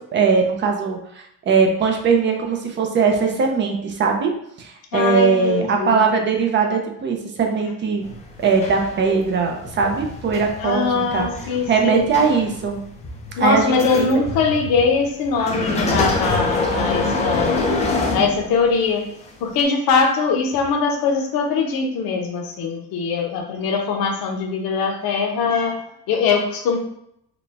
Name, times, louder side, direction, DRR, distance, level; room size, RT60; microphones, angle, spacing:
voice 1, 0.1-1.0 1.5-4.3 4.6-8.0 8.4-11.3 11.7-12.8 13.4-14.1 17.3-17.4, right 5 dB, 35° right, 2 dB, 0.5 m, -20 dB
voice 2, 4.9-6.0 10.6-12.1 13.4-17.6 18.1-19.0 19.4-26.8, left 5 dB, 80° left, 2 dB, 0.8 m, -21 dB
sound 1, 8.0-18.8 19.5-19.6, left 2 dB, 20° left, 0.5 m, -26 dB
4.0 x 2.2 x 3.4 m, 0.76 s
cardioid pair, 170°, 35 cm